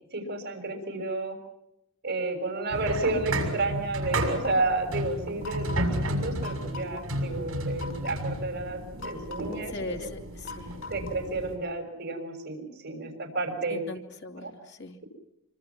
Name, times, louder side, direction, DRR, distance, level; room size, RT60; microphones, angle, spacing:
voice 1, 0.1-1.3 2.0-10.1 10.9-13.8 14.4-14.5, right 2 dB, 50° right, 4 dB, 6.4 m, -31 dB
sound 1, 2.7-11.6, right 1 dB, 70° right, 6.7 m, -33 dB
sound 2, 4.2-4.7 5.4-5.9 6.4-7.0 7.8-8.2 9.0-9.7 10.5-11.3, left 4 dB, 75° left, 5.8 m, -42 dB
voice 2, 9.7-10.7 13.7-15.0, left 2 dB, 55° left, 5 dB, 2.6 m, -39 dB
26.5 x 25.5 x 6.0 m, 0.82 s
head